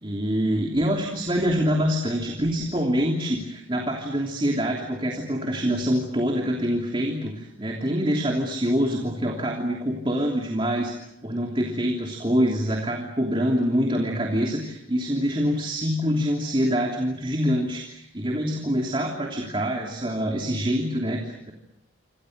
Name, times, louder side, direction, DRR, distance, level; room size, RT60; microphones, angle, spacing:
voice 1, 0.0-21.5, equal, 25° right, 1 dB, 3.1 m, -25 dB
28.0 x 27.0 x 6.7 m, 0.78 s
head